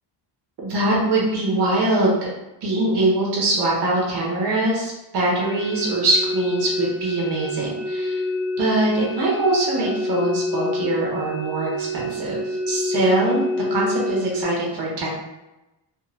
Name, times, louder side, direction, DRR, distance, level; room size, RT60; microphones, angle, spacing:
voice 1, 0.6-2.3 2.6-8.2 8.6-13.4 13.7-15.1, right 2 dB, 70° right, -4 dB, 1.2 m, -22 dB
sound 1, 5.4-14.4, left 1 dB, 10° right, 0.7 m, -27 dB
3.7 x 2.5 x 2.5 m, 0.98 s
cardioid pair, 130°, 43 cm